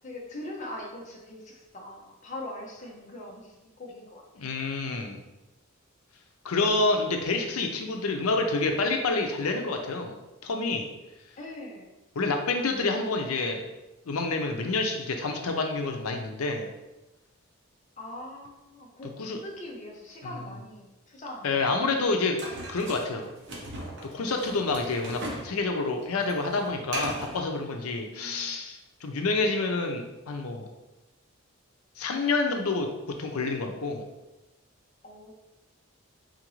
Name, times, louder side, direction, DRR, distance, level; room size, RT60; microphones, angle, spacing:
voice 1, 0.0-4.2 11.4-11.9 18.0-21.5 28.1-28.6 35.0-35.3, left 1 dB, 35° left, -1 dB, 0.6 m, -42 dB
voice 2, 4.4-5.2 6.4-10.2 10.4-10.9 12.2-13.7 14.1-16.7 19.2-19.4 20.2-20.3 21.4-22.4 22.7-23.3 24.0-30.7 32.0-32.9 33.2-34.1, left 3 dB, 85° left, 4 dB, 0.5 m, -28 dB
sound 1, 22.4-25.5 25.8-27.4, right 1 dB, 55° right, 0.7 m, -38 dB
3.9 x 2.5 x 3.0 m, 1.0 s
head